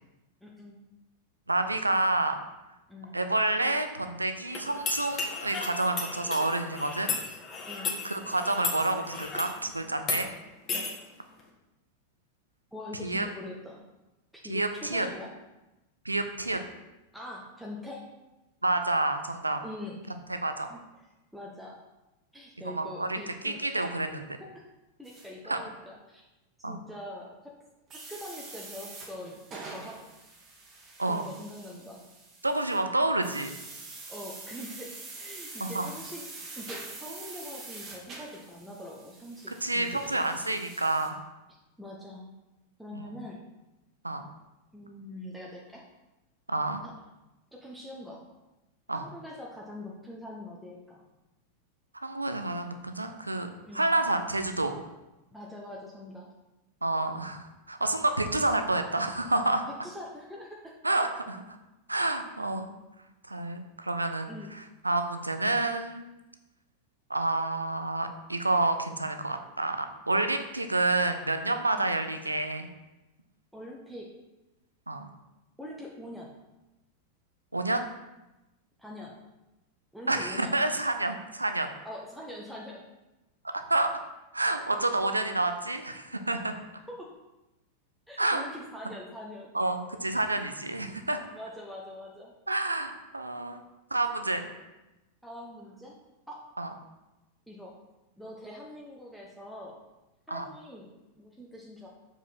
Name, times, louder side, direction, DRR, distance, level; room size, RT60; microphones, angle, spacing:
voice 1, 0.4-0.8 2.9-3.2 7.7-8.0 12.7-13.8 14.4-15.3 17.1-18.1 19.6-20.0 20.7-20.8 21.3-21.8 22.3-23.9 24.4-24.5 25.0-26.2 26.7-27.5 27.9-30.0 31.1-32.0 34.1-36.3 36.6-40.3 41.8-42.3 42.8-43.4 44.7-45.8 46.8-46.9 47.5-48.2 48.9-51.0 53.7-53.8 55.3-56.3 59.4-59.5 59.8-60.7 64.3-64.5 71.7-72.0 73.5-74.1 75.6-76.3 78.8-79.1 79.9-80.6 81.8-82.8 86.9-87.1 88.1-89.5 91.3-92.3 95.2-96.0 96.3-96.4 97.5-97.8 98.2-99.8 100.3-100.9 101.2-101.9, left 1 dB, ahead, -3 dB, 1.0 m, -43 dB
voice 2, 1.5-2.4 3.1-7.1 8.0-10.3 13.0-13.3 14.5-15.1 16.0-16.6 18.6-19.6 20.3-20.7 22.6-24.2 25.5-25.6 26.6-26.8 31.0-31.3 32.4-33.6 35.6-35.9 39.6-41.2 42.9-43.1 44.0-44.2 46.5-46.8 48.9-49.0 51.9-53.5 53.7-54.7 56.8-59.6 60.8-61.6 61.9-62.7 63.3-66.1 67.1-72.7 74.9-75.1 77.5-77.8 80.1-81.7 83.5-83.9 84.3-86.5 88.2-88.4 89.5-91.2 92.5-93.6 93.9-94.5 96.6-96.7 100.3-100.4, right 2 dB, 85° right, 8 dB, 0.6 m, -29 dB
sound 1, 4.5-9.6 10.0-10.2 10.7-10.9, left 4 dB, 30° left, 1.6 m, -34 dB
sound 2, 25.0-25.3 27.9-32.8 33.2-41.1, right 3 dB, 30° right, 1.5 m, -45 dB
7.1 x 5.0 x 4.3 m, 1.0 s
figure-of-eight pair, 90°, 0 cm